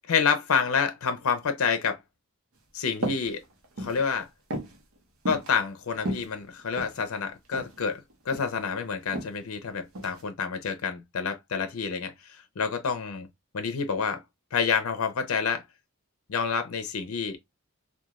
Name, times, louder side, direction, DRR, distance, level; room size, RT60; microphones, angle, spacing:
voice 1, 0.1-2.0 2.7-3.4 3.8-4.3 5.3-12.1 12.6-13.3 13.5-14.2 14.5-15.6 16.3-17.4, left 6 dB, 85° left, 0.5 m, -28 dB
sound 1, 3.0-3.3 3.6-4.0 4.5-4.8 5.3-5.5 6.0-7.0 7.5-7.8 8.1-8.6 9.1-9.3 10.0-10.2, equal, 75° right, 0.8 m, -33 dB
3.0 x 2.3 x 2.3 m
head